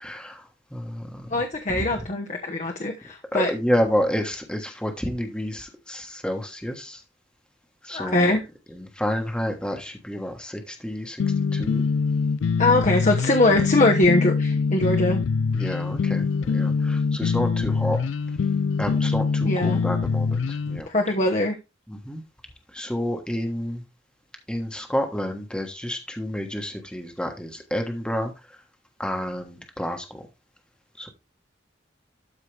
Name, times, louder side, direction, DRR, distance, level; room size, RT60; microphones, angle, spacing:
voice 1, 0.0-1.3 1.7-1.8 3.3-7.0 7.8-8.4 8.7-11.2 11.5-11.8 13.4-13.7 15.5-18.0 18.8-20.9 21.9-22.2 22.7-23.8 24.5-28.6 29.0-30.3 31.0-31.1, equal, 5° left, 1.3 m, -29 dB
voice 2, 1.3-3.5 7.9-8.4 12.6-15.2 19.4-19.8 20.9-21.5, left 2 dB, 40° left, 1.1 m, -22 dB
sound 1, 11.2-20.8, left 5 dB, 80° left, 0.4 m, -24 dB
12.5 x 4.8 x 3.3 m
head